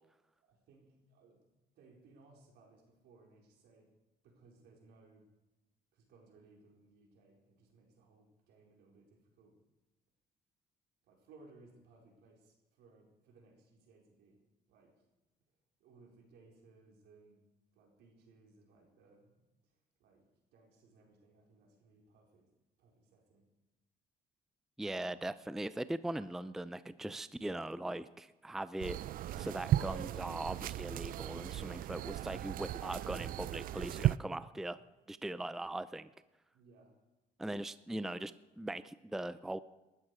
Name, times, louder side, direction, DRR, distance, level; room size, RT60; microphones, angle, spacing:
voice 1, 0.4-3.9 4.2-5.3 5.9-9.6 11.0-15.1 15.8-17.4 17.7-22.5 22.8-23.5 36.5-37.0, right 3 dB, 80° right, 0 dB, 4.4 m, -63 dB
voice 2, 24.8-29.0 29.4-34.8 35.1-36.1 37.4-39.6, right 1 dB, ahead, 14 dB, 0.5 m, -40 dB
sound 1, 28.8-34.2, right 13 dB, 55° right, 0.4 m, -36 dB
19.0 x 13.0 x 4.9 m, 1.1 s
cardioid pair, 110°, 17 cm